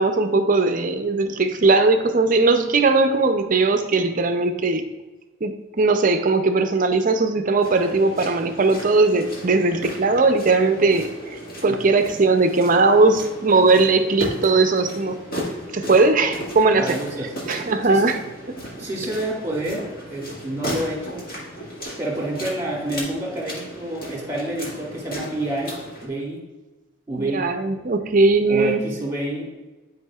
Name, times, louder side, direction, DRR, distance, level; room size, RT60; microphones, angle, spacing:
voice 1, 0.0-4.9 5.4-15.2 15.7-17.0 17.5-18.2 18.5-18.6 27.2-28.8, right 3 dB, 40° right, 7 dB, 0.5 m, -19 dB
sound 1, 7.6-26.1, equal, 45° left, 1.9 m, -35 dB
voice 2, 16.8-17.3 17.9-18.0 18.8-21.2 22.0-25.8 26.0-26.4 27.1-27.5 28.5-29.5, right 1 dB, 15° right, -3 dB, 2.1 m, -28 dB
11.0 x 4.8 x 2.4 m, 1.2 s
head